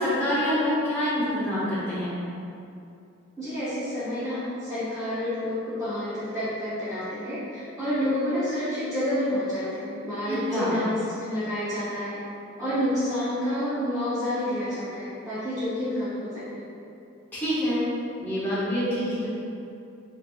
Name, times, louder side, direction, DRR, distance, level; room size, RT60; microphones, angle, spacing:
voice 1, 0.0-2.1 10.3-10.7 17.3-17.8 18.2-19.3, equal, 10° left, -12 dB, 1.0 m, -26 dB
voice 2, 3.4-12.2 12.6-16.6, left 1 dB, 15° right, -17 dB, 1.0 m, -29 dB
4.0 x 3.3 x 2.4 m, 2.6 s
head